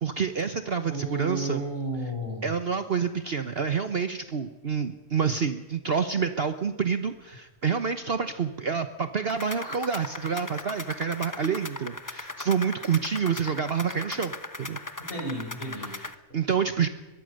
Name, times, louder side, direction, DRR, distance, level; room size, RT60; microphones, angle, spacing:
voice 1, 0.0-1.6 2.4-14.3 14.6-14.8 15.8-16.9, right 6 dB, 45° right, 9 dB, 1.1 m, -28 dB
voice 2, 0.9-2.4 15.1-16.0, right 1 dB, 40° left, 0 dB, 7.0 m, -32 dB
sound 1, 9.3-16.1, left 2 dB, 15° left, 0.8 m, -39 dB
23.0 x 21.5 x 6.5 m, 1.1 s
omnidirectional pair, 1.5 m